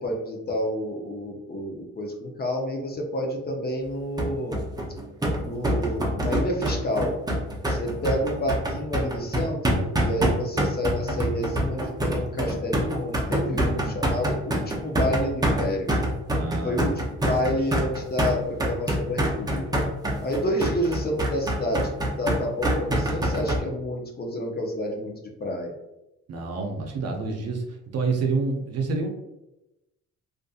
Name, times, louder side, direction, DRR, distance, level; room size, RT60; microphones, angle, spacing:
voice 1, 0.0-4.7 5.4-7.1 7.7-15.9 16.6-19.9 20.2-21.9 22.2-25.7, equal, 30° left, 1 dB, 0.6 m, -29 dB
sound 1, 4.2-23.6, right 1 dB, 15° right, 0.6 m, -25 dB
voice 2, 13.4-14.0 16.3-17.6 26.3-27.6 27.9-29.1, right 4 dB, 55° right, 2 dB, 0.6 m, -29 dB
2.5 x 2.5 x 2.4 m, 0.93 s
cardioid pair, 90°, 30 cm